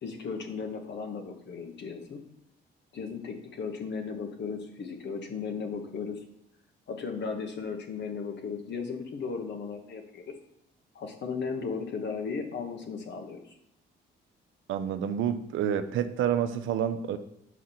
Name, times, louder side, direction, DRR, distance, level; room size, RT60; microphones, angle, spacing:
voice 1, 0.0-2.2 2.9-6.2 6.9-10.3 10.9-13.4, left 5 dB, 60° left, 4 dB, 1.3 m, -36 dB
voice 2, 14.7-17.2, right 9 dB, 80° right, 9 dB, 0.7 m, -28 dB
6.3 x 4.9 x 5.7 m, 0.82 s
cardioid pair, 90°, 20 cm